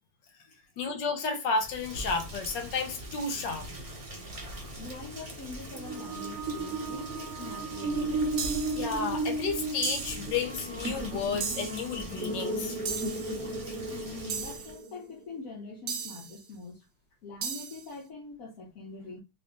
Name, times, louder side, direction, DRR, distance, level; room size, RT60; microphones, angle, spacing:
voice 1, 0.8-3.7 8.7-12.8, left 4 dB, 75° left, 1.4 m, -32 dB
Rain, 1.6-14.8, equal, 30° right, 0.7 m, -42 dB
voice 2, 4.8-8.1 13.9-16.9 17.2-19.2, left 3 dB, 55° left, 1.2 m, -44 dB
sound 1, 5.7-15.1, right 2 dB, 60° right, 1.1 m, -35 dB
sound 2, 8.4-8.9 9.8-10.3 11.4-11.9 12.9-13.4 14.3-14.8 15.9-16.4 17.4-17.9, right 7 dB, 75° right, 1.4 m, -36 dB
3.5 x 2.6 x 3.7 m
omnidirectional pair, 2.0 m